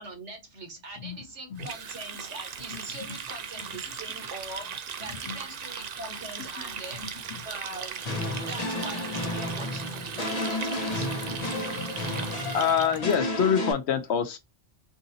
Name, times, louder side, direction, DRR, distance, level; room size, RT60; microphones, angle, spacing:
voice 1, 0.0-4.7 5.0-7.1 7.4-8.0 8.4-11.1, right 2 dB, 85° right, 1.7 m, -42 dB
Water tap faucet, 1.6-13.1, right 7 dB, 55° right, 0.5 m, -38 dB
sound 1, 8.0-13.7, left 1 dB, 35° left, 1.1 m, -32 dB
voice 2, 12.5-14.4, left 7 dB, 75° left, 1.0 m, -26 dB
4.7 x 2.6 x 2.7 m
omnidirectional pair, 1.1 m